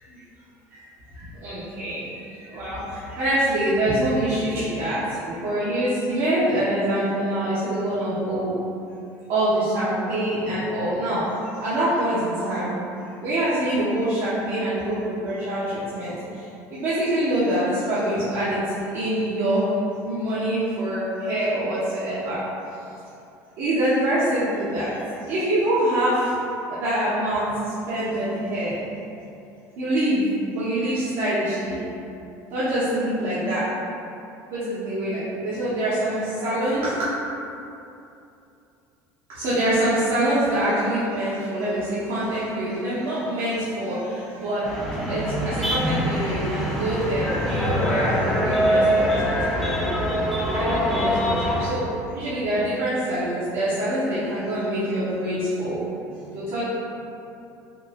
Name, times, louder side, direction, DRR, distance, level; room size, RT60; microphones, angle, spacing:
voice 1, 1.1-8.5 9.3-12.8 13.2-22.4 23.6-26.3 26.7-28.8 29.8-31.8 32.5-33.6 34.5-37.1 39.3-44.7 45.0-50.0 50.5-51.8 52.1-55.8 56.1-56.6, right 1 dB, 65° right, -11 dB, 0.9 m, -25 dB
sound 1, 44.6-51.7, equal, 5° left, 0.7 m, -24 dB
3.9 x 2.5 x 2.4 m, 2.8 s
supercardioid pair, 90°, 9 cm